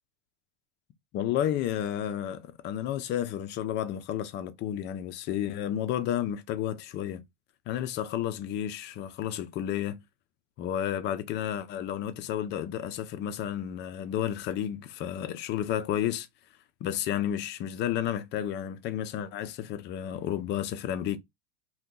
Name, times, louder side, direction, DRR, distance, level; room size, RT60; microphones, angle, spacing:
voice 1, 1.1-7.2 7.7-10.0 10.6-16.3 16.8-21.2, left 10 dB, 30° left, 0.4 m, -31 dB
2.8 x 2.2 x 3.6 m
supercardioid pair, 130°, 36 cm